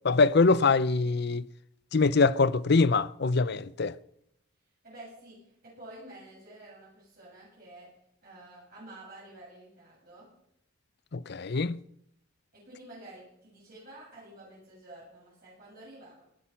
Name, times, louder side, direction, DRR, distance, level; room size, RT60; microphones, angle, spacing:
voice 1, 0.0-1.5 1.9-3.9 11.1-11.8, left 4 dB, 55° left, 0.6 m, -23 dB
voice 2, 4.8-7.9 8.2-10.3 12.5-16.2, right 1 dB, 45° right, 7.8 m, -49 dB
18.5 x 12.0 x 5.8 m
head